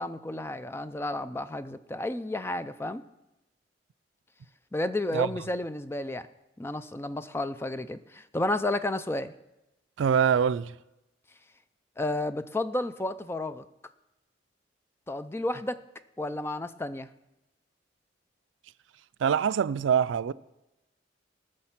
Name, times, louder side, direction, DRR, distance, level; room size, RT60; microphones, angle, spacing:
voice 1, 0.0-3.0 4.7-6.3 6.6-9.3 12.0-13.6 15.1-15.8 16.2-17.1, left 1 dB, 15° left, 0.4 m, -32 dB
voice 2, 10.0-10.7 19.2-20.3, right 7 dB, 85° right, 0.4 m, -24 dB
19.0 x 6.5 x 5.9 m
head